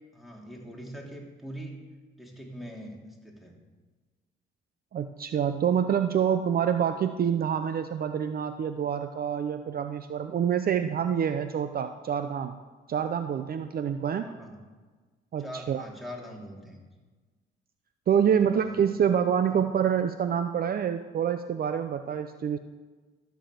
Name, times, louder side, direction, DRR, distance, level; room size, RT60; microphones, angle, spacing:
voice 1, 0.1-1.8 2.2-3.6 14.2-14.6 15.4-16.8 18.3-18.9 19.5-19.6, equal, ahead, -1 dB, 3.0 m, -42 dB
voice 2, 4.9-12.6 12.9-14.3 15.3-15.8 18.1-22.6, right 8 dB, 50° right, 9 dB, 0.6 m, -27 dB
13.5 x 7.0 x 7.6 m, 1.4 s
cardioid pair, 90°, 20 cm